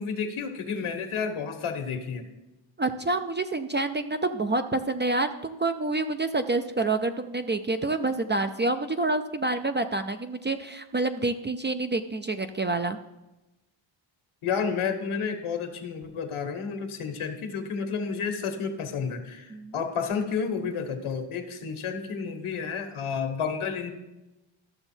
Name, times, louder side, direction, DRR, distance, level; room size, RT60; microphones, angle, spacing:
voice 1, 0.0-2.3 14.4-23.9, left 6 dB, 75° left, 7 dB, 1.4 m, -31 dB
voice 2, 2.8-13.0 19.5-19.7, right 2 dB, 25° right, 8 dB, 0.4 m, -28 dB
13.0 x 6.7 x 4.4 m, 1.0 s
cardioid pair, 100°, 50 cm